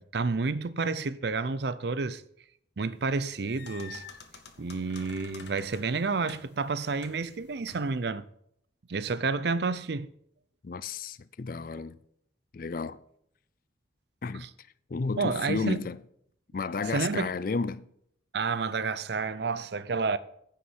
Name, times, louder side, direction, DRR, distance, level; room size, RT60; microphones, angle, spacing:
voice 1, 0.0-2.2 2.8-4.1 4.6-8.3 8.9-10.1 14.3-14.5 15.2-15.9 16.9-17.3 18.3-20.2, right 4 dB, 60° right, 0.5 m, -30 dB
sound 1, 3.1-8.0, left 5 dB, 60° left, 1.3 m, -49 dB
voice 2, 10.6-12.0 12.5-13.0 14.2-14.5 14.9-16.0 16.5-17.9, left 4 dB, 45° left, 0.4 m, -32 dB
9.9 x 5.7 x 7.8 m
head